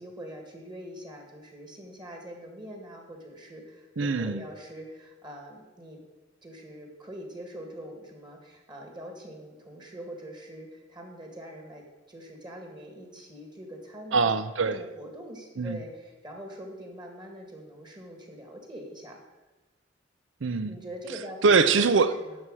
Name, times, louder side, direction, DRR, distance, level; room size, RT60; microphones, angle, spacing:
voice 1, 0.0-6.0 6.4-14.3 14.6-19.2 20.7-21.5 22.2-22.4, equal, 25° right, 2 dB, 1.9 m, -43 dB
voice 2, 4.0-4.4 14.1-14.8 15.6-15.8 20.4-20.7 21.4-22.2, right 4 dB, 75° right, 13 dB, 0.6 m, -23 dB
11.5 x 4.8 x 7.6 m, 1.2 s
head